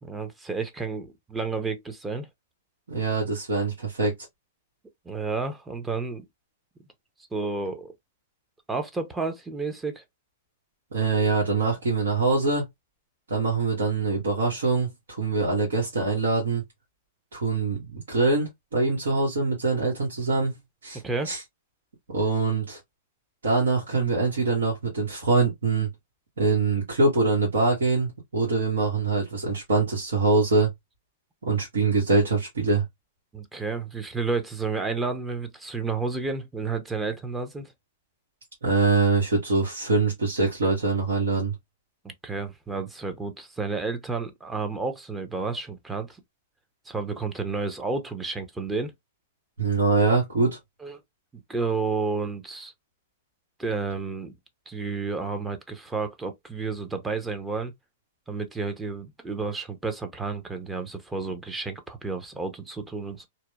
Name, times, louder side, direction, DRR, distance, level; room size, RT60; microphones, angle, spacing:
voice 1, 0.0-2.3 5.1-6.2 7.3-7.9 8.7-10.0 21.0-21.3 33.3-37.7 42.0-46.2 46.9-48.9 50.8-51.0 51.3-52.7 53.6-54.4 54.7-57.7 58.3-63.3, right 4 dB, 10° right, 0.5 m, -31 dB
voice 2, 2.9-4.1 10.9-12.7 13.3-16.6 17.3-20.6 20.8-21.4 22.1-22.8 23.4-25.9 26.4-30.7 31.5-32.8 38.6-41.5 49.6-50.6, right 3 dB, 85° right, 1.0 m, -24 dB
2.8 x 2.1 x 2.2 m
hypercardioid pair, 125°, 0 cm